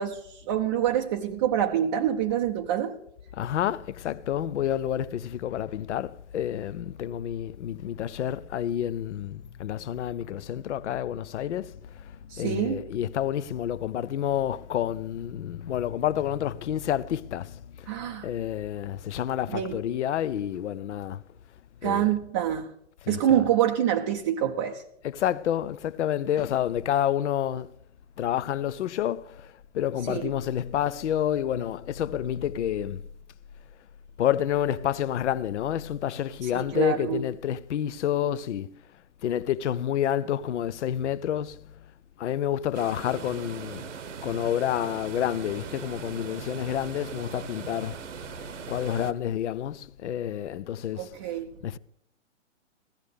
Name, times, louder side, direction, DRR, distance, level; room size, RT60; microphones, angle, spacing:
voice 1, 0.0-3.0 12.3-12.8 17.9-18.3 19.5-19.8 21.8-22.7 23.1-24.8 30.1-30.3 36.4-37.3 51.0-51.6, right 10 dB, 25° right, 0.5 m, -26 dB
voice 2, 3.4-12.0 12.4-17.9 18.2-21.2 21.8-22.1 23.0-23.4 25.0-27.7 28.2-33.0 34.2-38.7 39.2-41.6 42.2-43.8 44.2-48.0 48.7-51.1 51.6-51.8, left 10 dB, 65° left, 0.6 m, -29 dB
sound 1, 42.7-49.1, right 6 dB, 75° right, 1.0 m, -40 dB
16.0 x 13.0 x 3.3 m
hypercardioid pair, 130°, 38 cm